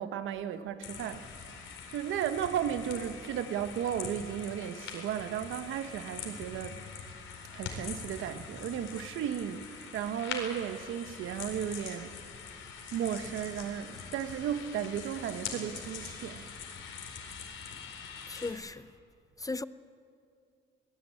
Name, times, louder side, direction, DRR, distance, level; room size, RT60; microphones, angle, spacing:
voice 1, 0.0-1.7 1.9-6.8 7.5-12.2 12.9-16.5, right 9 dB, 80° right, 1.2 m, -35 dB
sound 1, 0.8-18.5, left 6 dB, 80° left, 4.4 m, -43 dB
voice 2, 18.3-18.9 19.4-19.6, left 3 dB, 15° left, 0.6 m, -36 dB
22.5 x 19.5 x 8.7 m
cardioid pair, 90°, 20 cm